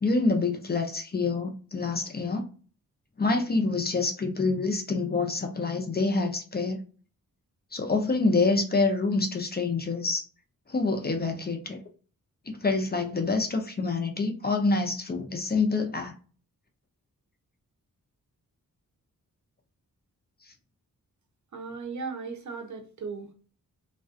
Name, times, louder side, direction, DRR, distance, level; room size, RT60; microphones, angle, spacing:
voice 1, 0.0-2.4 3.2-6.8 7.7-10.2 10.7-11.8 12.6-16.1, left 3 dB, 30° left, 0.5 m, -26 dB
voice 2, 21.5-23.3, right 4 dB, 60° right, 0.6 m, -37 dB
2.3 x 2.2 x 2.4 m
cardioid pair, 75°, 34 cm